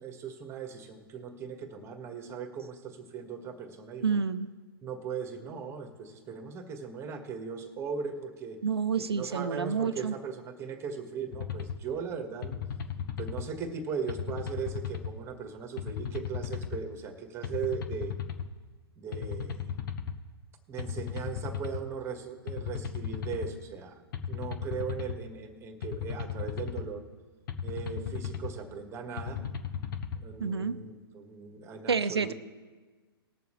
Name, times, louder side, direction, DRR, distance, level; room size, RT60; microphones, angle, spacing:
voice 1, 0.0-4.2 4.8-8.6 8.9-12.6 13.2-18.1 19.0-19.7 20.7-27.0 27.6-29.4 30.2-32.3, right 6 dB, 20° right, 5 dB, 1.6 m, -38 dB
voice 2, 4.0-4.5 8.6-10.1 30.4-30.8 31.9-32.3, right 6 dB, 85° right, 11 dB, 0.6 m, -29 dB
sound 1, 11.3-11.8 12.4-13.5 14.1-15.1 15.8-16.8 17.4-18.5 19.1-20.2 20.8-21.8 22.5-23.5 24.1-25.2 25.8-26.9 27.5-28.5 29.2-30.2, left 8 dB, 55° left, 1.0 m, -35 dB
20.0 x 7.0 x 3.2 m, 1.4 s
figure-of-eight pair, 120°, 13 cm